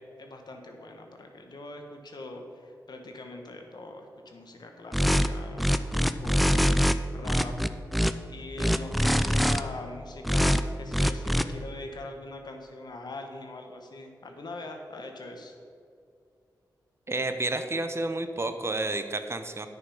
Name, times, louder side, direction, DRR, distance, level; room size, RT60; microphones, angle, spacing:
voice 1, 0.0-6.7 7.1-7.6 8.3-15.5, left 2 dB, 65° left, 4 dB, 1.4 m, -42 dB
sound 1, 4.9-5.3 5.6-6.9 7.2-8.1 8.6-9.6 10.2-10.6 10.9-11.4, equal, ahead, 0.5 m, -23 dB
voice 2, 17.1-19.7, right 2 dB, 35° right, 8 dB, 0.8 m, -30 dB
9.2 x 6.9 x 5.6 m, 2.3 s
cardioid pair, 50°, 8 cm